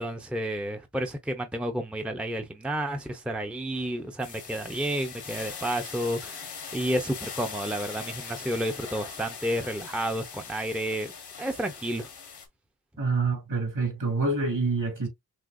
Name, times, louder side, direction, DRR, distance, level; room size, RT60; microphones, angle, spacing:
voice 1, 0.0-12.1, right 1 dB, 5° right, 0.6 m, -31 dB
sound 1, 2.7-3.0 3.4-12.5, left 6 dB, 85° left, 1.2 m, -41 dB
voice 2, 13.0-15.1, right 3 dB, 55° right, 2.5 m, -27 dB
6.2 x 2.4 x 2.6 m
wide cardioid pair, 70°, 39 cm